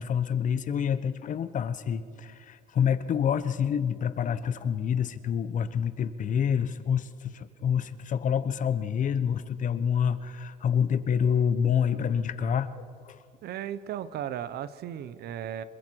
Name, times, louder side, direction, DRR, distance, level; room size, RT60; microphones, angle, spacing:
voice 1, 0.0-13.2, left 8 dB, 50° left, 13 dB, 1.0 m, -27 dB
voice 2, 13.4-15.6, right 10 dB, 70° right, 15 dB, 1.0 m, -35 dB
27.0 x 22.5 x 4.7 m, 2.2 s
cardioid pair, 110°, 17 cm